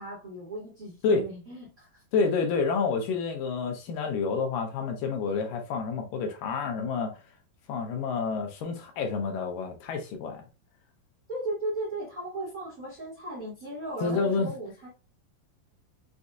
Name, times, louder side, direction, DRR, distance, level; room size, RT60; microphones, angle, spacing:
voice 1, 0.0-2.0 11.3-14.9, right 1 dB, 35° right, 1.5 m, -36 dB
voice 2, 2.1-7.2 7.7-10.4 14.0-14.5, left 5 dB, 75° left, 2.4 m, -28 dB
6.2 x 2.7 x 2.3 m
omnidirectional pair, 4.1 m